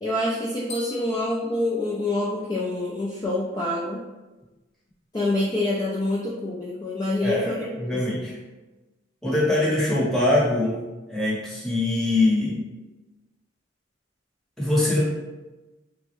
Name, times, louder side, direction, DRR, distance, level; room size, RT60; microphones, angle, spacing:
voice 1, 0.0-4.0 5.1-7.6 7.9-8.2, left 1 dB, 20° left, -5 dB, 0.3 m, -26 dB
sound 1, 0.7-2.6, left 4 dB, 55° left, 0.8 m, -43 dB
voice 2, 7.2-7.5 7.8-8.4 9.2-10.8 11.1-12.6 14.6-15.0, left 2 dB, ahead, -7 dB, 0.8 m, -22 dB
3.4 x 2.0 x 3.0 m, 1.1 s
head